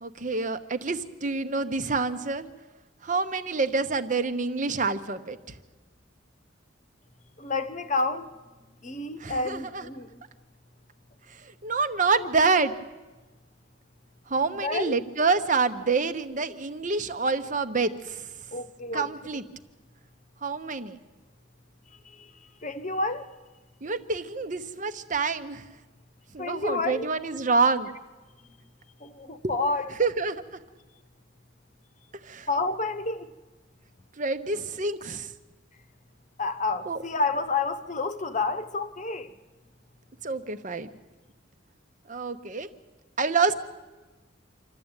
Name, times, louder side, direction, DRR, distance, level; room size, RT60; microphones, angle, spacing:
voice 1, 0.0-2.4 3.0-5.4 9.2-9.9 11.4-12.7 14.3-18.3 18.9-19.4 20.4-21.0 23.8-25.6 26.3-27.9 29.4-29.5 30.0-30.4 32.2-32.5 34.2-35.3 36.9-37.0 40.2-40.9 42.1-42.7 43.2-43.5, right 4 dB, 40° right, 0.9 m, -27 dB
voice 2, 7.4-8.3 8.8-10.2 12.2-12.3 14.6-15.0 18.5-19.1 22.1-22.3 22.6-23.3 26.4-27.1 29.0-29.9 32.5-33.3 36.4-39.3, left 3 dB, 40° left, 1.0 m, -29 dB
27.0 x 12.5 x 8.9 m
head